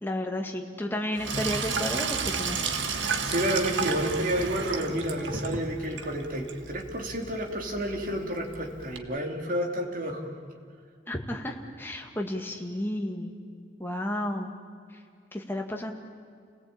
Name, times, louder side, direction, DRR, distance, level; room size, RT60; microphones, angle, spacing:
voice 1, 0.0-2.6 11.1-13.3 13.8-14.5 15.3-15.9, left 1 dB, 10° left, 1 dB, 2.0 m, -32 dB
Sink (filling or washing), 1.1-9.0, right 5 dB, 80° right, 1.7 m, -33 dB
voice 2, 3.2-10.3, equal, 45° right, 1 dB, 3.2 m, -30 dB
29.5 x 18.0 x 8.8 m, 2.2 s
head